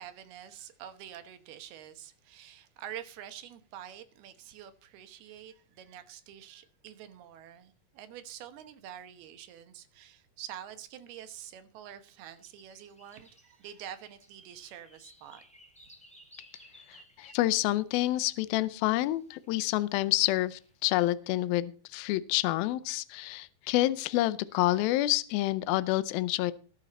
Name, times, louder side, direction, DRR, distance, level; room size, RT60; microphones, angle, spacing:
voice 1, 0.0-15.4, right 10 dB, 85° right, 3.2 m, -47 dB
sound 1, 12.4-18.3 19.1-19.9 20.4-20.7, equal, 5° left, 1.1 m, -58 dB
voice 2, 16.9-26.5, left 16 dB, 80° left, 2.4 m, -28 dB
20.0 x 6.8 x 4.2 m
omnidirectional pair, 4.4 m